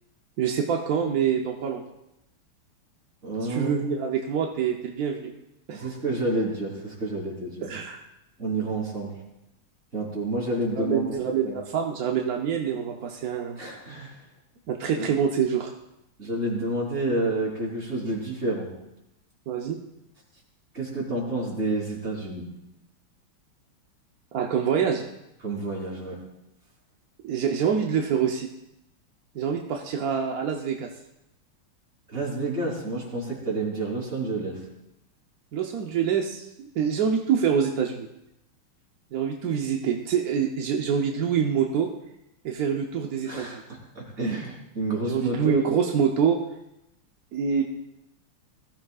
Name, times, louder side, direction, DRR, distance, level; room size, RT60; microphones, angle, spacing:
voice 1, 0.4-1.8 3.4-5.3 5.7-5.9 7.6-8.1 10.8-13.6 14.7-15.7 19.5-19.8 24.3-25.1 27.2-28.5 29.3-30.9 35.5-38.1 39.1-41.9 42.4-43.6 45.0-46.4 47.3-47.6, right 7 dB, 60° right, 2 dB, 1.0 m, -26 dB
voice 2, 3.2-3.8 5.7-7.7 8.4-9.2 9.9-11.6 13.6-14.2 14.9-15.1 16.2-18.7 20.7-22.5 25.4-26.2 32.1-34.6 43.3-45.9, right 2 dB, 30° right, -4 dB, 4.0 m, -29 dB
21.0 x 14.5 x 2.4 m, 0.87 s
omnidirectional pair, 2.4 m